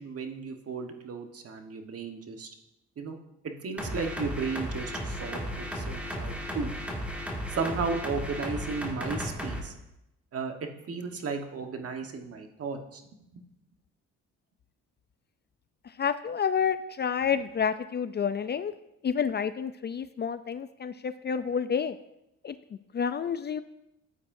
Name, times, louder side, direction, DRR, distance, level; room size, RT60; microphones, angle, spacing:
voice 1, 0.0-2.5 3.0-3.2 3.6-6.7 7.5-9.7 10.3-13.0 13.3-13.4, right 4 dB, 50° right, 5 dB, 1.3 m, -34 dB
sound 1, 3.8-9.6, equal, 5° right, 2.0 m, -35 dB
voice 2, 16.0-18.7 19.0-22.0 22.4-23.6, left 7 dB, 35° left, 12 dB, 0.4 m, -29 dB
13.0 x 8.4 x 2.6 m, 0.85 s
cardioid pair, 90°, 30 cm